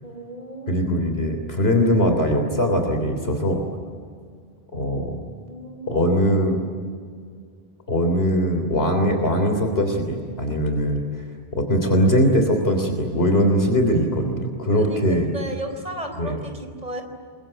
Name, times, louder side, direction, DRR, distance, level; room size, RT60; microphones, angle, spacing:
voice 1, 0.0-0.8 5.4-5.9 14.7-17.0, right 1 dB, 40° right, 5 dB, 4.5 m, -34 dB
voice 2, 0.7-3.6 4.7-5.2 5.9-6.6 7.9-11.2 11.5-15.3 16.2-16.4, equal, 75° left, 4 dB, 3.6 m, -21 dB
28.5 x 22.5 x 9.0 m, 2.1 s
omnidirectional pair, 1.0 m